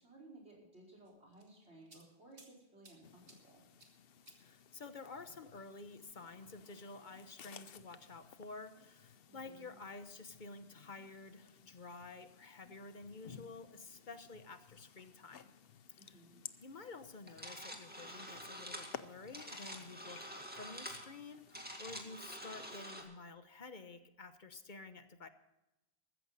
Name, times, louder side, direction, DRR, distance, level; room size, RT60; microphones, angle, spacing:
voice 1, 0.0-3.6 9.3-9.8 16.0-16.4, right 2 dB, 85° right, -1 dB, 5.2 m, -59 dB
sound 1, 1.0-2.5 2.8-3.4 3.8-3.9 4.2-4.4 6.0-6.5, right 2 dB, 60° right, 2.4 m, -61 dB
sound 2, 3.0-22.8, left 8 dB, 65° left, 0.9 m, -57 dB
voice 2, 4.4-15.5 16.0-16.2 16.6-25.3, left 3 dB, 50° left, 10 dB, 1.2 m, -51 dB
sound 3, 17.3-23.0, equal, 10° right, 2.1 m, -47 dB
15.0 x 13.5 x 4.1 m, 0.95 s
omnidirectional pair, 1.1 m